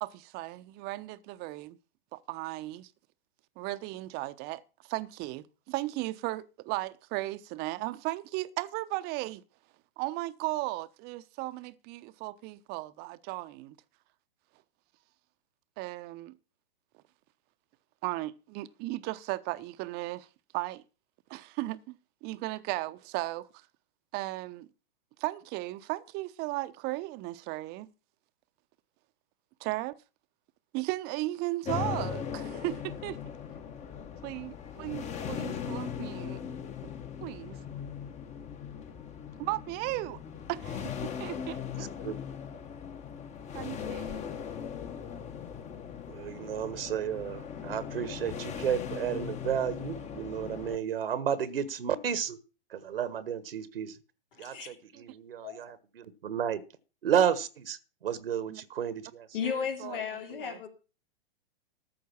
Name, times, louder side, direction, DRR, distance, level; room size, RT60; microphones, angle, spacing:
voice 1, 0.0-1.8 2.1-2.9 3.6-9.4 10.0-13.7 15.8-16.3 18.0-20.3 20.5-20.8 21.3-22.0 22.2-23.5 24.1-24.7 25.2-27.9 29.6-30.0 30.7-33.2 34.2-36.4 37.2-37.6 39.4-40.2 40.5-41.6 43.5-44.3 54.5-54.6 54.9-55.0 58.5-58.6 59.4-60.0 60.4-60.6, right 19 dB, 35° right, 0.9 m, -36 dB
sound 1, 31.7-50.8, left 8 dB, 25° left, 1.4 m, -39 dB
voice 2, 41.8-42.2 46.1-52.4 52.7-54.0 54.4-56.6 57.0-59.3, right 8 dB, 75° right, 1.3 m, -32 dB
voice 3, 54.3-54.7 55.4-55.6 59.3-60.7, left 7 dB, 65° left, 2.8 m, -35 dB
14.0 x 5.5 x 7.1 m
hypercardioid pair, 115°, 29 cm